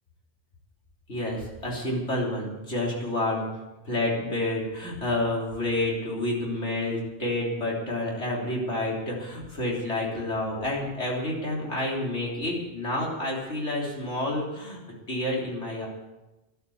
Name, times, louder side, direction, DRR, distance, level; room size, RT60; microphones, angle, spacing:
voice 1, 1.1-3.5 3.9-14.8 15.1-15.9, left 1 dB, 85° left, -3 dB, 3.9 m, -29 dB
13.5 x 12.0 x 7.1 m, 1.0 s
omnidirectional pair, 1.2 m